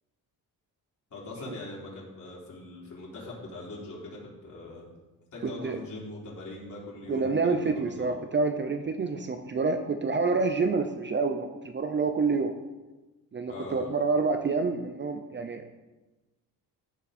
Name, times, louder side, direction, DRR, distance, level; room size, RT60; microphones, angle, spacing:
voice 1, 1.1-4.8 5.3-8.2 13.5-13.9, left 2 dB, 50° left, -5 dB, 4.0 m, -42 dB
voice 2, 5.4-5.8 7.1-12.5 13.3-15.7, right 4 dB, 30° right, 7 dB, 0.6 m, -28 dB
15.0 x 7.0 x 4.2 m, 1.1 s
cardioid pair, 160°, 38 cm